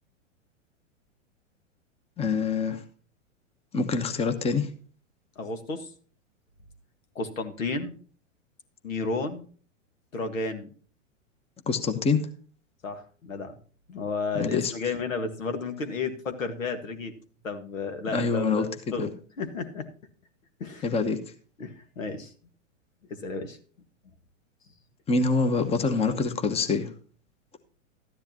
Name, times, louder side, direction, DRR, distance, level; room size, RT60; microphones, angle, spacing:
voice 1, 2.2-2.8 3.7-4.7 11.7-12.2 14.4-14.7 18.1-18.7 19.0-19.1 20.8-21.2 25.1-26.9, left 4 dB, 15° left, 10 dB, 1.0 m, -25 dB
voice 2, 5.4-5.9 7.2-8.0 8.8-9.5 10.1-10.7 12.8-13.6 13.9-17.1 17.4-19.1 19.4-19.9 20.6-20.9 21.6-22.3 23.1-23.6, left 3 dB, 85° left, 7 dB, 1.8 m, -32 dB
13.0 x 10.0 x 2.9 m, 0.41 s
hypercardioid pair, 110°, 38 cm